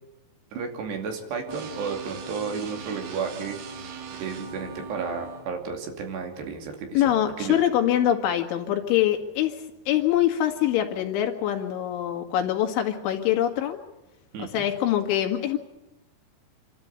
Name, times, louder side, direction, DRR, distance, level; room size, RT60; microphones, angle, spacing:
voice 1, 0.5-3.6 4.2-7.6 14.3-14.6, right 5 dB, 65° right, 3 dB, 4.6 m, -33 dB
sound 1, 1.5-5.5, right 5 dB, 85° right, 4.7 m, -39 dB
voice 2, 6.9-9.5 9.9-13.8 14.4-15.6, left 11 dB, 85° left, 4 dB, 4.4 m, -24 dB
28.0 x 12.5 x 9.6 m, 0.94 s
omnidirectional pair, 5.3 m